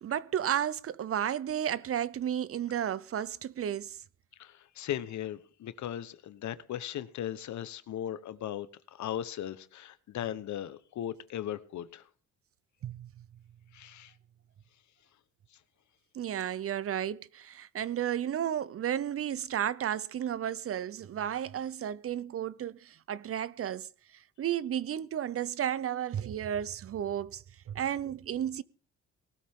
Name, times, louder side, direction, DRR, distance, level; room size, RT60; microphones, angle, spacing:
voice 1, 0.0-4.0 12.8-13.1 16.1-23.9 24.1-28.6, right 10 dB, 50° right, 0.6 m, -33 dB
voice 2, 4.4-12.1 13.7-14.2, left 11 dB, 70° left, 1.1 m, -38 dB
19.0 x 13.0 x 3.7 m
cardioid pair, 90°, 30 cm